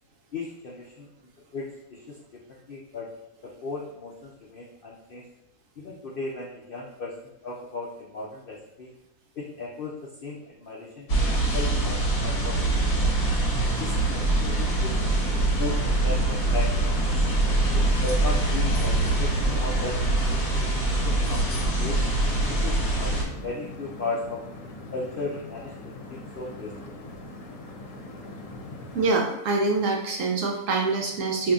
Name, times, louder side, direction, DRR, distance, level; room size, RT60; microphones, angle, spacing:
voice 1, 0.3-1.1 1.5-3.1 3.4-5.2 5.8-8.9 9.3-11.1 11.4-13.3 13.8-15.0 15.6-17.2 17.7-22.0 22.5-24.4 24.9-26.9, left 3 dB, 90° left, -3 dB, 0.4 m, -36 dB
sound 1, 11.1-23.2, right 2 dB, 45° left, 1.0 m, -24 dB
sound 2, 13.6-29.1, left 1 dB, 70° left, 1.0 m, -41 dB
voice 2, 28.9-31.5, right 3 dB, 65° right, 0 dB, 0.8 m, -25 dB
5.2 x 2.7 x 2.4 m, 0.92 s
omnidirectional pair, 1.7 m